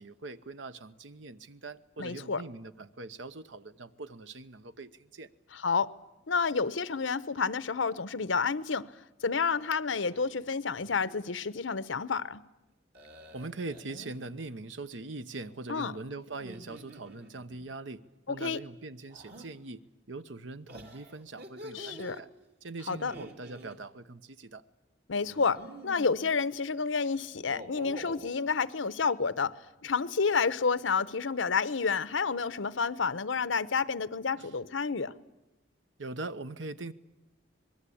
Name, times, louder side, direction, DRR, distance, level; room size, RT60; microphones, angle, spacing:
voice 1, 0.0-5.3 13.3-18.0 18.3-19.8 20.1-22.3 22.6-24.6 34.4-34.5 36.0-36.9, right 3 dB, 75° right, 1.0 m, -42 dB
voice 2, 2.0-2.4 5.5-5.9 6.3-8.9 9.2-12.4 15.7-15.9 18.3-18.6 21.7-22.2 22.9-23.1 25.1-29.5 29.8-35.1, left 5 dB, 90° left, 0.9 m, -30 dB
sound 1, 10.0-10.3 10.7-11.2 12.9-14.2 16.3-17.6 19.1-19.5 20.7-22.2 22.9-23.8 25.2-26.3 27.3-28.3, equal, 60° right, 2.7 m, -47 dB
25.5 x 21.0 x 8.6 m
head